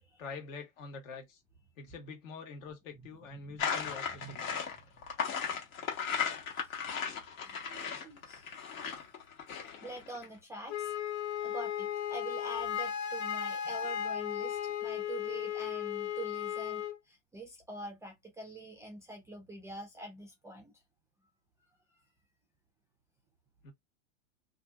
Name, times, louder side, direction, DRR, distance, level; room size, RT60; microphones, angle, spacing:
voice 1, 0.2-1.4 1.8-4.5 23.6-23.7, left 4 dB, 65° left, 1.4 m, -45 dB
voice 2, 3.3-3.7 4.1-5.1 6.6-6.7 7.4-9.1 9.5-20.7 21.9-22.0, right 2 dB, 10° right, 0.3 m, -46 dB
sound 1, 3.6-10.2, left 6 dB, 80° left, 1.5 m, -36 dB
Wind instrument woodwind instrument, 10.7-17.0, left 9 dB, 45° left, 0.6 m, -35 dB
2.7 x 2.5 x 2.3 m
hypercardioid pair, 115°, 41 cm